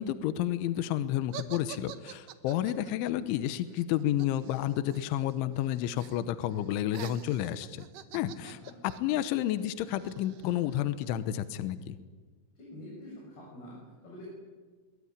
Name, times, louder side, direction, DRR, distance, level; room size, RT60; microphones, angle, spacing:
voice 1, 0.0-7.8 8.1-8.6 9.0-12.0, left 12 dB, 75° left, 12 dB, 3.3 m, -31 dB
sound 1, 1.3-5.3 5.6-6.2 6.5-11.1, right 10 dB, 85° right, 1.9 m, -47 dB
voice 2, 8.4-8.8 12.6-14.2, left 1 dB, 50° left, -3 dB, 8.9 m, -47 dB
23.0 x 22.5 x 9.8 m, 1.4 s
omnidirectional pair, 5.8 m